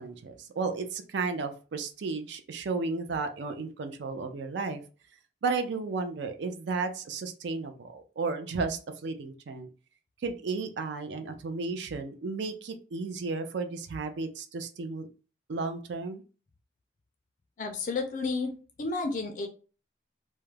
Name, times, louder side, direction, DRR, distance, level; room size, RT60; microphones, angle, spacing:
voice 1, 0.0-4.8 5.4-9.7 10.2-15.1 15.5-16.2, right 4 dB, 75° right, 7 dB, 0.4 m, -33 dB
voice 2, 17.6-18.5 18.8-19.5, left 3 dB, 45° left, 5 dB, 0.3 m, -31 dB
2.3 x 2.1 x 3.2 m, 0.36 s
head